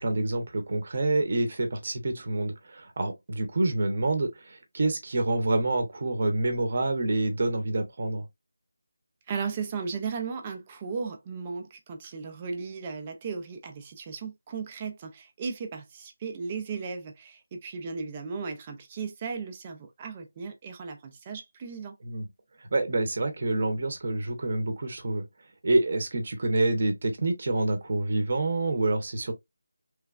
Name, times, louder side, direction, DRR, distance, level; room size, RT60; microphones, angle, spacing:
voice 1, 0.0-8.2 22.0-22.2 22.7-25.2 25.6-29.3, right 2 dB, 40° right, 0.7 m, -27 dB
voice 2, 9.3-22.0, right 5 dB, 15° right, 0.3 m, -36 dB
3.0 x 2.2 x 2.3 m
figure-of-eight pair, 175°, 0 cm